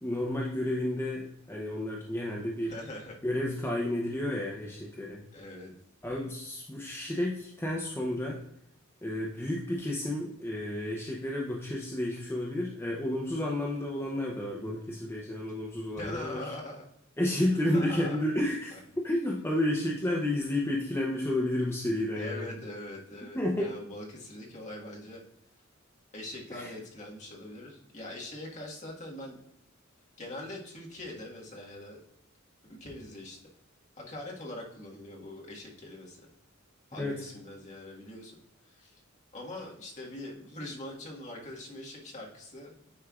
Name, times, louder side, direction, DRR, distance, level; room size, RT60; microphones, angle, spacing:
voice 1, 0.0-2.7 3.2-5.2 6.0-8.4 9.0-16.5 17.2-18.8 19.0-22.5 23.3-23.7 26.5-26.7 37.0-37.3, left 1 dB, 10° left, -2 dB, 0.7 m, -31 dB
voice 2, 2.6-3.2 5.3-5.7 16.0-16.9 17.5-18.2 18.7-18.8 22.1-25.2 26.1-29.4 30.2-32.0 32.7-33.4 34.0-36.3 36.9-38.3 38.6-39.0 39.3-42.9, left 1 dB, 35° left, -2 dB, 1.5 m, -42 dB
9.6 x 4.4 x 2.4 m, 0.75 s
head